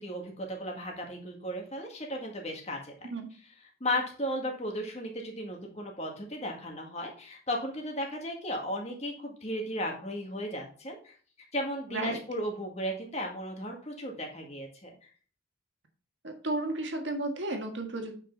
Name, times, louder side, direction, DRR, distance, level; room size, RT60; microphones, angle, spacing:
voice 1, 0.0-2.9 3.8-11.2 11.5-14.9, equal, 30° left, 1 dB, 1.9 m, -35 dB
voice 2, 11.9-12.2 16.2-18.2, right 2 dB, 65° right, 4 dB, 1.6 m, -33 dB
8.4 x 5.7 x 4.0 m, 0.43 s
head